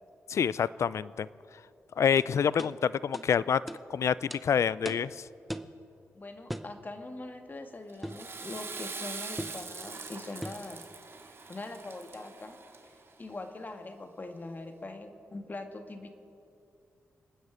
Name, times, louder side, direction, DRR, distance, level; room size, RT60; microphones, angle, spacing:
voice 1, 0.3-1.3 2.0-3.6 3.9-5.2, left 7 dB, 65° left, 19 dB, 0.4 m, -27 dB
sound 1, 2.2-2.3 2.6-2.7 3.1-3.3 3.7-3.8 4.3-4.4 4.9-5.1 5.5-5.7 6.5-6.7 8.0-8.3 9.4-9.6 10.4-10.7, equal, ahead, 0.8 m, -38 dB
voice 2, 6.1-10.9 11.3-12.6 12.8-16.1, left 2 dB, 35° left, 6 dB, 1.6 m, -42 dB
Water / Toilet flush, 7.9-13.1, right 4 dB, 50° right, 1.3 m, -43 dB
27.0 x 9.5 x 5.0 m, 2.6 s
cardioid pair, 60°, 5 cm